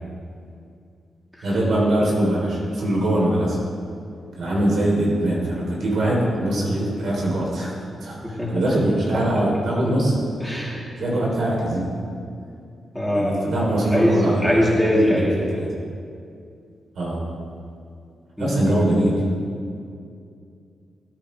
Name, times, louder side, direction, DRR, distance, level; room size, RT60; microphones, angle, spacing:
voice 1, 1.4-3.6 4.4-7.7 8.0-10.2 11.0-11.9 13.1-14.7 15.0-15.3 15.5-15.7 16.9-17.2 18.4-19.2, right 1 dB, 70° right, -3 dB, 3.5 m, -22 dB
voice 2, 10.4-10.8 12.9-13.4 13.9-14.1 14.4-15.4 18.4-18.7, equal, ahead, -6 dB, 3.3 m, -21 dB
19.5 x 8.8 x 3.4 m, 2.4 s
cardioid pair, 75°, 0 cm